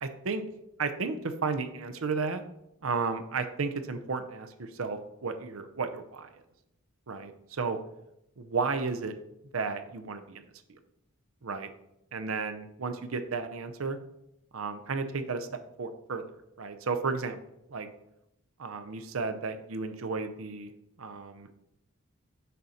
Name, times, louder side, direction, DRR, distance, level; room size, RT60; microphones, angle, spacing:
voice 1, 0.0-0.4 0.8-2.4 2.8-6.3 7.1-7.8 8.4-9.1 9.5-10.4 10.7-10.8 11.4-11.7 12.1-14.0 14.5-15.5 15.8-16.2 16.6-17.4 17.7-17.9 18.6-20.7 21.0-21.5, right 4 dB, 90° right, 8 dB, 0.7 m, -33 dB
6.7 x 5.1 x 4.2 m, 0.84 s
head